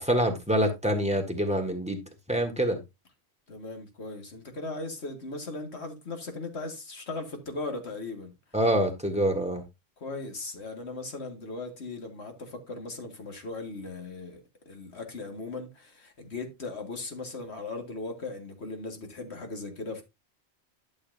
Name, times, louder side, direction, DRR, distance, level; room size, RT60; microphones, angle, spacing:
voice 1, 0.0-2.0 2.3-2.8 8.5-9.6, equal, 5° right, 1.6 m, -26 dB
voice 2, 3.5-8.3 10.0-20.0, left 3 dB, 75° left, 2.1 m, -38 dB
11.5 x 7.0 x 2.6 m
omnidirectional pair, 1.1 m